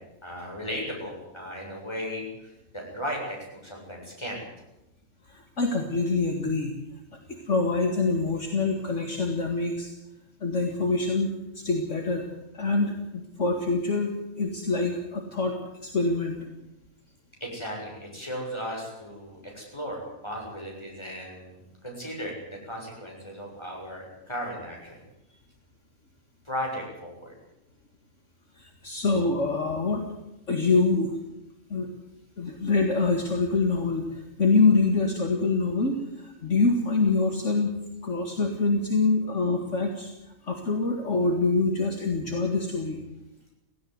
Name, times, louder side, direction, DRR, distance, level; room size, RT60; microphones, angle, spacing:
voice 1, 0.2-4.4 17.4-25.0 26.4-27.3, equal, 20° left, -1 dB, 7.4 m, -36 dB
voice 2, 5.3-6.7 7.3-9.9 10.4-12.2 12.5-15.6 15.8-16.4 28.6-30.0 30.5-31.2 31.7-31.9 32.4-37.8 38.0-40.1 40.4-43.0, left 3 dB, 55° left, 3 dB, 2.3 m, -25 dB
17.5 x 16.5 x 9.5 m, 0.91 s
omnidirectional pair, 1.5 m